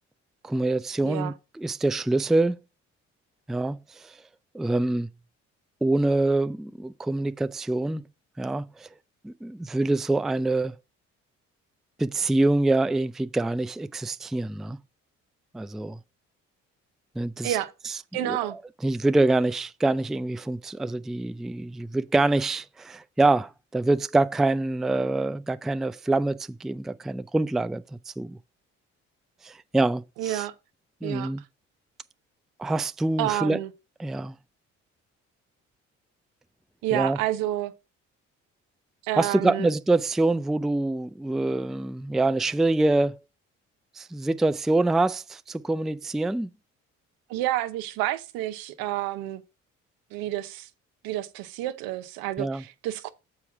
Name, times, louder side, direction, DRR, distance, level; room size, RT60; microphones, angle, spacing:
voice 1, 0.4-2.6 3.5-4.2 4.5-5.1 5.8-8.0 8.4-8.9 9.2-10.7 12.0-14.8 15.5-16.0 17.2-17.6 17.8-17.9 18.2-28.4 29.4-30.5 31.0-31.4 32.6-33.6 34.0-34.4 36.9-37.2 39.2-43.2 44.0-46.5 52.4-52.6, right 2 dB, ahead, 0.4 m, -25 dB
voice 2, 18.1-18.6 30.2-30.5 31.0-31.3 33.2-33.7 36.8-37.7 39.0-39.7 47.3-49.4 50.1-50.7 51.0-53.1, right 14 dB, 70° right, 0.8 m, -29 dB
7.0 x 4.7 x 5.8 m
hypercardioid pair, 50°, 36 cm